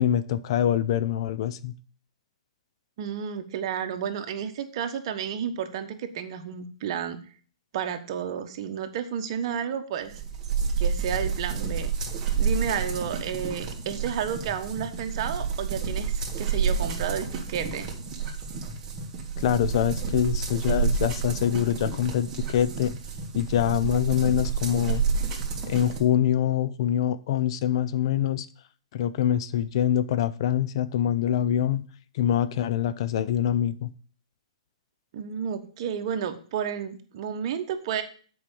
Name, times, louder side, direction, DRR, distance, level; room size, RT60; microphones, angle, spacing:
voice 1, 0.0-1.7 19.4-22.9 23.3-25.0 25.7-28.5 28.9-31.9 32.1-33.9, left 10 dB, 50° left, 0.6 m, -25 dB
voice 2, 3.0-7.2 7.7-10.2 10.8-11.9 12.4-17.9 35.1-38.0, right 8 dB, 50° right, 1.2 m, -31 dB
sound 1, 10.1-26.0, right 5 dB, 20° right, 1.9 m, -29 dB
7.6 x 4.9 x 7.0 m
hypercardioid pair, 140°, 3 cm